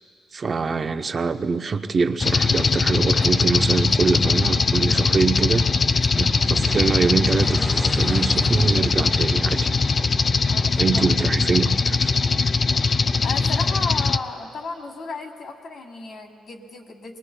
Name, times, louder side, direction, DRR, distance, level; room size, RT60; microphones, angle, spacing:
voice 1, 0.3-5.6 6.2-9.7 10.8-12.1, right 4 dB, 40° right, 8 dB, 0.6 m, -24 dB
sound 1, 2.2-14.2, left 4 dB, 40° left, 0.4 m, -21 dB
sound 2, 5.7-11.6, right 1 dB, 5° right, 0.8 m, -34 dB
voice 2, 10.5-11.1 13.2-17.2, left 4 dB, 60° left, 3 dB, 1.7 m, -34 dB
23.0 x 21.0 x 2.3 m, 2.5 s
cardioid pair, 90°, 0 cm